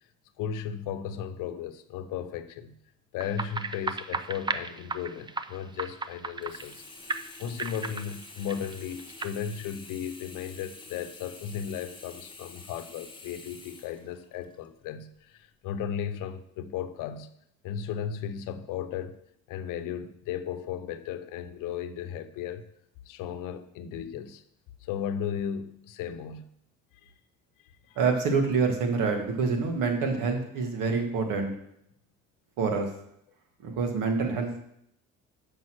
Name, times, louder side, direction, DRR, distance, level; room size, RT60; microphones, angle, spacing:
voice 1, 0.4-2.7 3.1-6.8 7.4-17.3 17.6-19.1 19.5-22.7 23.1-24.4 24.8-26.5 27.0-27.1 27.9-28.0, left 8 dB, 85° left, 10 dB, 0.8 m, -35 dB
sound 1, 3.2-6.8 7.1-9.3, right 4 dB, 15° right, 0.4 m, -35 dB
Sink (filling or washing), 6.4-14.7 15.2-15.3, left 3 dB, 15° left, 1.5 m, -48 dB
voice 2, 28.0-31.5 32.6-32.9 33.6-34.5, right 4 dB, 85° right, 4 dB, 1.7 m, -26 dB
7.6 x 5.4 x 6.2 m, 0.73 s
cardioid pair, 100°, 31 cm